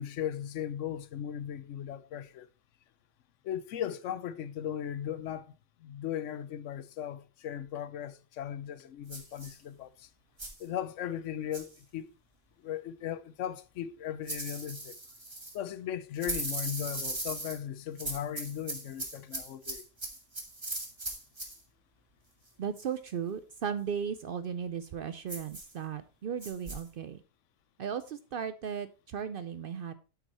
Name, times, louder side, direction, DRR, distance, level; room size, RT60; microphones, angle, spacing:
voice 1, 0.0-2.5 3.4-5.5 5.8-10.1 10.6-12.1 12.6-15.0 15.5-19.8, left 10 dB, 75° left, 1.0 m, -37 dB
sound 1, 9.1-9.5 10.4-10.6 11.5-11.8 14.3-15.6 16.2-17.6 18.0-21.6 25.3-25.7 26.4-26.8, right 2 dB, 20° right, 1.4 m, -38 dB
voice 2, 22.6-27.2 27.8-29.9, right 7 dB, 60° right, 0.6 m, -36 dB
8.0 x 5.8 x 4.2 m
omnidirectional pair, 1.3 m